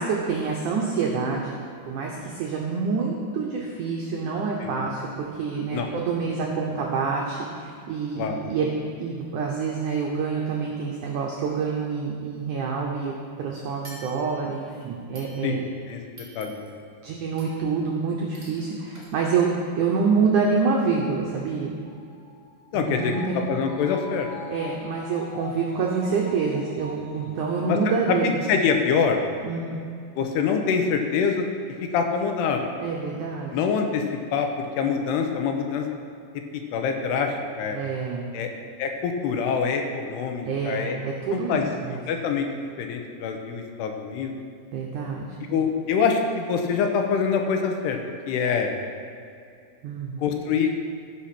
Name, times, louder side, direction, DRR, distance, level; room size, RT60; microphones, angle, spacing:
voice 1, 0.0-1.6 1.9-8.7 9.0-15.7 17.0-19.5 19.8-21.8 22.7-23.4 24.5-28.4 29.4-29.8 32.8-33.6 37.7-38.3 40.5-42.0 44.7-45.5 49.8-50.2, right 5 dB, 80° right, -1 dB, 1.7 m, -27 dB
sound 1, 13.8-14.6 15.1-15.8 16.2-16.9 17.4-17.7 18.3-18.7 18.9-19.1, right 1 dB, 10° right, 2.4 m, -47 dB
voice 2, 16.4-16.7 22.7-23.1 23.5-24.3 27.7-27.8 28.1-29.2 30.2-31.5 31.9-32.7 33.5-34.0 34.3-34.5 34.8-35.9 36.5-37.8 38.3-38.5 38.8-41.0 41.3-41.6 41.9-42.5 42.8-44.3 45.5-48.0 48.3-48.7 50.2-50.9, left 6 dB, 80° left, 4 dB, 3.0 m, -25 dB
sound 2, 21.8-28.5 28.9-29.0, left 3 dB, 55° left, 2.3 m, -43 dB
14.5 x 5.8 x 5.9 m, 2.4 s
omnidirectional pair, 4.9 m